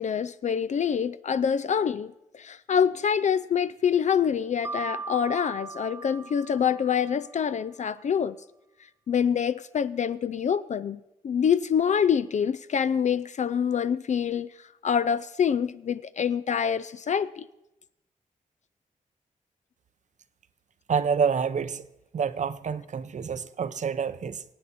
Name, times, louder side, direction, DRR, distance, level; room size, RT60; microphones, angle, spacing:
voice 1, 0.0-8.4 9.1-14.5 14.8-17.5, left 7 dB, 55° left, 0.4 m, -26 dB
Mallet percussion, 4.6-7.4, right 4 dB, 15° right, 0.4 m, -39 dB
voice 2, 20.9-21.9 22.1-24.4, right 6 dB, 55° right, 0.7 m, -27 dB
24.5 x 8.5 x 4.2 m
cardioid pair, 75°, 15 cm